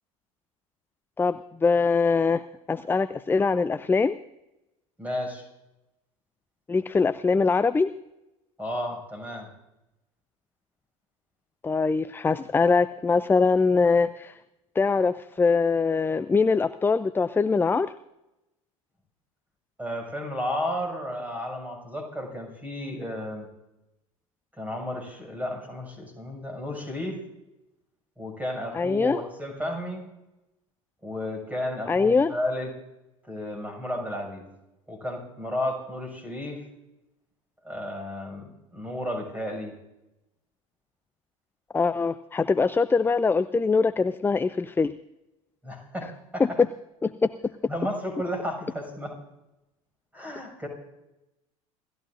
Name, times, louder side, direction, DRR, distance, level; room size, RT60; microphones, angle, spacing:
voice 1, 1.2-2.4 2.7-4.2 6.7-7.9 11.6-14.3 14.8-17.9 28.7-29.2 31.9-32.3 41.7-44.9 46.4-46.5 47.0-47.3, left 4 dB, 10° left, 14 dB, 0.4 m, -23 dB
voice 2, 5.0-5.4 8.6-9.5 19.8-23.5 24.6-27.2 28.2-30.1 31.0-32.7 33.2-34.4 34.9-36.6 37.6-39.7 45.6-46.6 47.7-49.2 50.1-50.7, left 1 dB, 10° right, 2 dB, 6.4 m, -33 dB
28.5 x 14.0 x 2.6 m, 0.93 s
hypercardioid pair, 75°, 18 cm